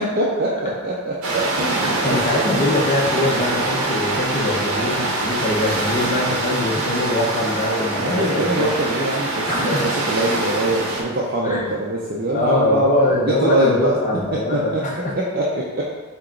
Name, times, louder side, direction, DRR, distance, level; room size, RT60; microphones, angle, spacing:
voice 1, 0.0-2.2 2.5-2.7 8.0-12.9 13.2-13.9 14.5-14.8 15.2-15.9, right 1 dB, 45° right, -5 dB, 0.5 m, -23 dB
sound 1, 1.2-11.0, right 2 dB, 80° right, 0.7 m, -24 dB
voice 2, 1.8-8.7 9.5-9.9 11.4-11.8 12.3-15.1, left 2 dB, 35° left, -3 dB, 0.8 m, -22 dB
4.5 x 2.9 x 3.8 m, 1.3 s
head